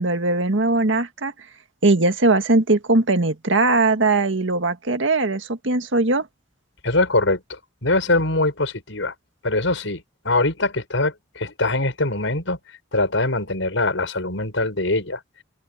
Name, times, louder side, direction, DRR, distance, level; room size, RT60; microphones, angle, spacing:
voice 1, 0.0-1.3 1.8-6.3, right 2 dB, 85° right, 1.8 m, -20 dB
voice 2, 6.8-9.1 9.4-12.6 12.9-15.2, left 2 dB, 90° left, 5.8 m, -23 dB
open air
head